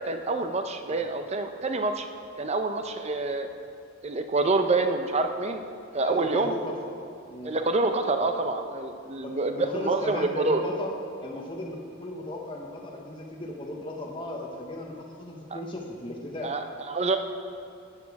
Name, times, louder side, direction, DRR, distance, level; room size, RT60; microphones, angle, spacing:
voice 1, 0.1-2.1 2.4-3.5 4.0-5.6 5.9-6.5 7.4-10.6 15.5-15.6 16.4-17.2, right 3 dB, 30° right, 7 dB, 0.7 m, -27 dB
voice 2, 6.0-6.9 7.3-7.5 9.0-10.9 11.2-16.5, left 1 dB, 25° left, -1 dB, 0.9 m, -36 dB
14.0 x 8.7 x 4.7 m, 2.4 s
head